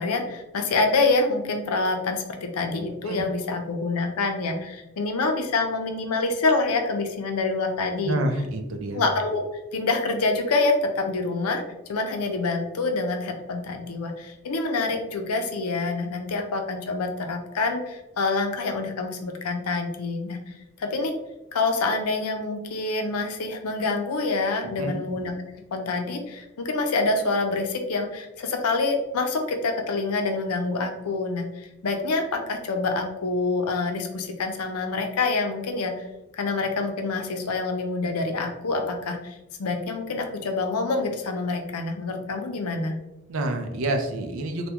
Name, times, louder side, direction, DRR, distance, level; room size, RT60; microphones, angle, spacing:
voice 1, 0.0-8.2 8.9-9.4 9.7-11.6 11.9-21.1 21.5-25.3 25.7-36.0 36.4-43.0, left 3 dB, 85° left, 4 dB, 0.5 m, -26 dB
voice 2, 8.0-9.0 24.6-25.0 43.3-44.7, right 1 dB, 60° right, 5 dB, 0.4 m, -28 dB
3.4 x 2.2 x 2.8 m, 0.96 s
head